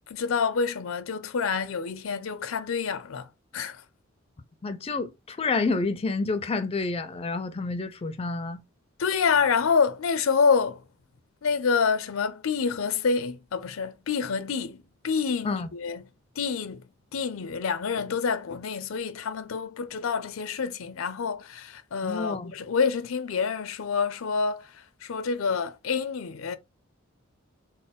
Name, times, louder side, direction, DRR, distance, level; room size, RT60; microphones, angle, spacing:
voice 1, 0.1-3.3 3.5-3.8 9.0-10.8 11.4-16.1 16.4-16.8 17.1-24.7 25.0-26.6, left 5 dB, 85° left, 0.5 m, -27 dB
voice 2, 4.6-8.6 15.4-15.7 22.0-22.5, left 3 dB, 30° left, 0.4 m, -29 dB
4.1 x 2.0 x 3.6 m
head